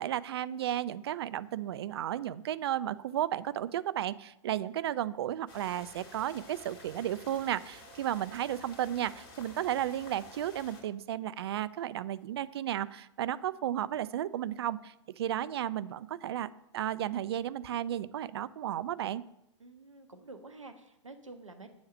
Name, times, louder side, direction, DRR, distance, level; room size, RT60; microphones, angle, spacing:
voice 1, 0.0-16.5 16.7-19.2, right 11 dB, 55° right, 16 dB, 0.4 m, -33 dB
sound 1, 5.5-10.8, left 2 dB, 45° left, 2.5 m, -51 dB
voice 2, 19.6-21.7, right 3 dB, 80° right, 7 dB, 1.2 m, -49 dB
7.1 x 6.5 x 7.2 m, 0.84 s
figure-of-eight pair, 100°, 16 cm